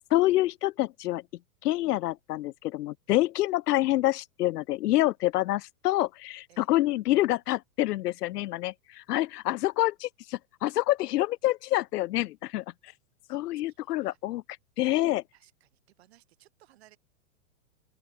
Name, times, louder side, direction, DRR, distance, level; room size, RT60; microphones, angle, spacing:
voice 1, 0.1-1.2 1.6-12.6 13.3-14.4 14.8-15.2, left 16 dB, 90° left, 0.5 m, -27 dB
voice 2, 13.7-14.2 15.3-17.0, right 15 dB, 45° right, 5.0 m, -61 dB
open air
hypercardioid pair, 175°, 46 cm